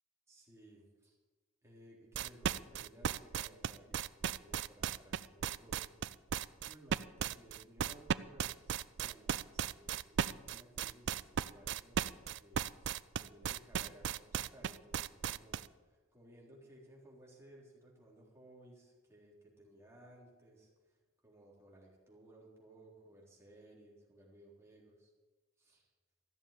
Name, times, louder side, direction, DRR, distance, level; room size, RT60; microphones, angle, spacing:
voice 1, 0.3-1.2 1.6-5.9 6.6-21.0 21.2-25.1 25.6-25.9, right 1 dB, 15° right, -4 dB, 3.7 m, -60 dB
sound 1, 2.1-15.7, right 8 dB, 60° right, 0.4 m, -36 dB
14.5 x 7.2 x 9.8 m, 1.3 s
head